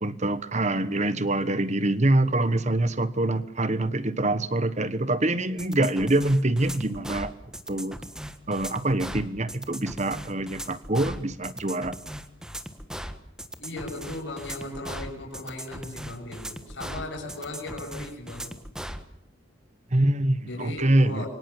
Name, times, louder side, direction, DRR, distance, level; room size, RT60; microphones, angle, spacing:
voice 1, 0.0-7.3 7.7-8.0 8.5-12.0 19.9-21.3, right 1 dB, 35° right, 14 dB, 1.3 m, -25 dB
sound 1, 5.6-19.0, equal, 5° right, 1.5 m, -38 dB
voice 2, 13.6-18.5 20.4-21.3, left 2 dB, 60° left, -1 dB, 7.3 m, -37 dB
27.5 x 25.0 x 7.3 m, 0.78 s
head